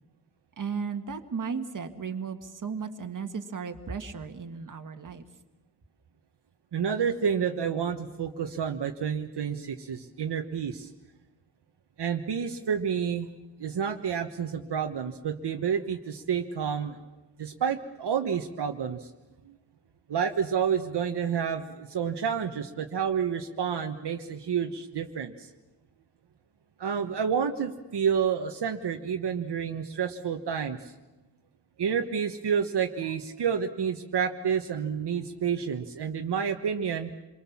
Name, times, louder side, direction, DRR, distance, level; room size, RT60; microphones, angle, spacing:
voice 1, 0.6-5.3, right 5 dB, 45° right, 7 dB, 1.8 m, -35 dB
voice 2, 6.7-10.9 12.0-13.3 13.6-16.9 17.4-19.1 20.1-25.5 26.8-30.9 31.8-37.1, right 7 dB, 70° right, 4 dB, 1.2 m, -29 dB
27.5 x 23.0 x 7.2 m, 1.1 s
wide cardioid pair, 145°, 42 cm